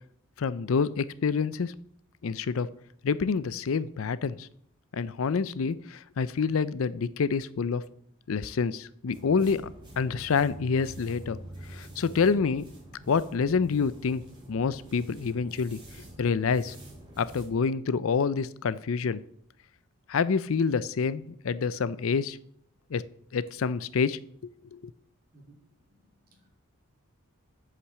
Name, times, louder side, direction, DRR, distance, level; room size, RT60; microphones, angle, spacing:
voice 1, 0.4-1.7 2.2-2.7 3.0-4.5 4.9-7.8 8.3-9.7 10.0-11.4 11.7-12.7 13.1-14.2 14.5-15.8 16.2-16.8 17.2-19.2 20.1-22.4 22.9-23.0 23.3-24.9, left 5 dB, 65° left, 17 dB, 0.5 m, -27 dB
Paint Brush Motion, 9.1-17.5, right 1 dB, 20° right, 3.1 m, -46 dB
voice 2, 25.9-26.5, right 2 dB, 45° right, 1 dB, 2.7 m, -59 dB
8.1 x 5.8 x 7.5 m, 0.65 s
head